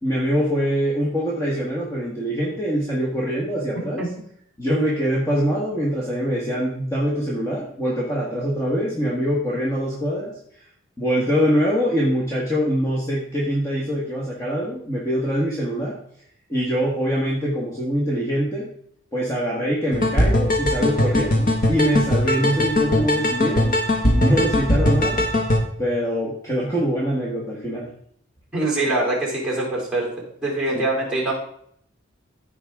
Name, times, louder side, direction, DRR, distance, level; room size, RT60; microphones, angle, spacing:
voice 1, 0.0-4.0 4.6-10.7 11.0-16.0 16.5-18.7 19.1-23.7 24.1-25.2 25.8-27.9 30.7-30.8, equal, 15° left, -4 dB, 1.5 m, -24 dB
sound 1, 19.9-25.6, left 1 dB, 40° left, 1.4 m, -20 dB
voice 2, 28.5-30.1 30.4-31.3, right 2 dB, 5° right, -4 dB, 3.5 m, -23 dB
14.5 x 5.0 x 3.6 m, 0.67 s
head